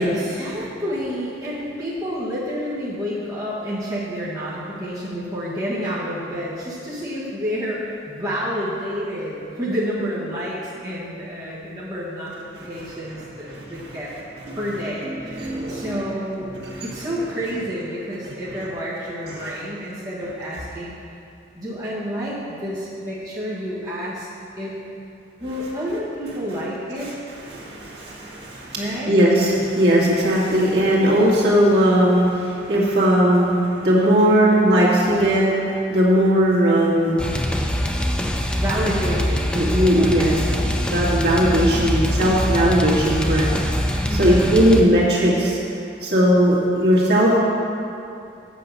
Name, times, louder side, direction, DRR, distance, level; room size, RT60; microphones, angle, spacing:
voice 1, 0.0-12.3 12.6-14.1 14.5-20.9 21.5-24.3 24.6-24.7 25.4-27.1 28.8-29.1 38.6-40.7 44.1-44.7, equal, 20° right, -9 dB, 1.6 m, -29 dB
voice 2, 12.9-13.6 14.5-14.6 15.2-15.9 16.6-16.8 19.3-19.5 27.0-27.1 27.5-37.2 39.6-40.4 40.9-43.5 44.1-45.6 46.0-47.4, equal, 60° right, -7 dB, 2.1 m, -18 dB
sound 1, 37.2-44.8, equal, 5° left, 0.4 m, -23 dB
8.3 x 5.9 x 6.7 m, 2.6 s
head